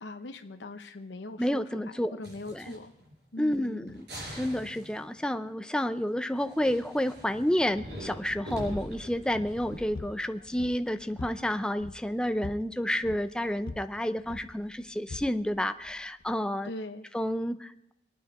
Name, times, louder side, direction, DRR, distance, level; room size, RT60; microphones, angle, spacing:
voice 1, 0.0-2.9 3.3-4.0 16.6-17.1, left 2 dB, 85° left, 6 dB, 0.8 m, -41 dB
voice 2, 1.4-2.2 2.5-2.7 3.4-4.1 4.3-16.7 17.1-17.9, equal, 5° left, 9 dB, 0.5 m, -30 dB
sound 1, 2.2-3.1 3.4-3.5 3.9-5.2 6.4-11.5, equal, 70° right, 5.1 m, -43 dB
sound 2, 7.7-16.3, left 3 dB, 55° left, 0.5 m, -46 dB
25.5 x 9.3 x 4.8 m, 0.80 s
head